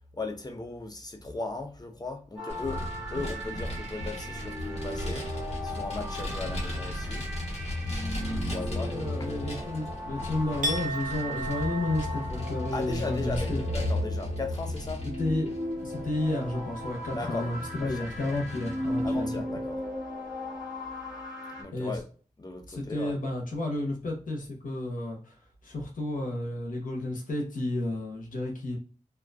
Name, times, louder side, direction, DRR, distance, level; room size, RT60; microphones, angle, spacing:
voice 1, 0.2-2.8 3.1-5.2 5.6-7.3 8.5-8.9 12.7-15.0 17.1-17.5 17.7-18.4 19.0-19.8 21.6-22.0 22.4-23.2, left 3 dB, 30° left, 4 dB, 0.6 m, -37 dB
sound 1, 2.4-21.6, equal, 5° right, 1.1 m, -37 dB
Vehicle, 2.5-19.4, left 1 dB, 50° left, 1.0 m, -36 dB
voice 2, 8.4-13.8 15.2-15.5 15.8-19.4 21.7-22.0 22.7-25.3 25.6-28.8, left 2 dB, 85° left, 0 dB, 0.7 m, -32 dB
Chink clink, 10.6-16.6 16.9-17.3, right 1 dB, 75° right, 0.5 m, -38 dB
2.3 x 2.2 x 2.3 m, 0.39 s
cardioid pair, 45°, 14 cm